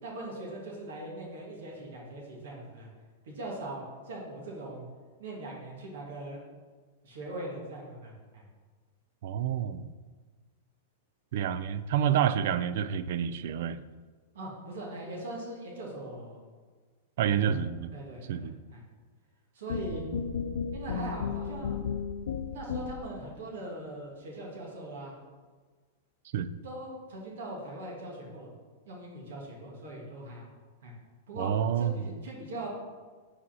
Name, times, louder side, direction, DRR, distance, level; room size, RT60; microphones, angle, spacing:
voice 1, 0.0-2.9 3.2-4.8 5.2-6.4 7.0-8.4 14.3-16.4 17.3-17.6 17.9-18.8 19.5-20.0 20.7-21.8 22.5-25.2 26.6-28.5 28.9-30.5 30.8-30.9 31.3-31.5 31.8-32.7, right 2 dB, 70° right, -2 dB, 1.8 m, -41 dB
voice 2, 9.2-9.9 11.3-13.8 17.2-17.9 18.3-18.6 20.1-20.2 26.3-26.5 31.4-32.0, right 9 dB, 55° right, 14 dB, 0.3 m, -28 dB
sound 1, 19.7-23.2, left 6 dB, 90° left, 0.5 m, -34 dB
5.2 x 4.2 x 5.6 m, 1.4 s
supercardioid pair, 170°, 0 cm